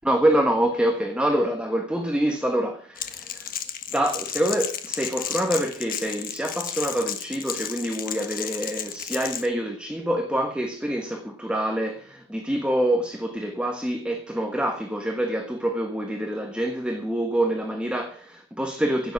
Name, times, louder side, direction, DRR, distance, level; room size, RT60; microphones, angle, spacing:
voice 1, 0.1-3.5 3.9-19.1, right 1 dB, 5° right, 1.4 m, -26 dB
Crackle, 3.0-9.5, left 9 dB, 50° left, 1.4 m, -33 dB
16.5 x 7.3 x 7.2 m
head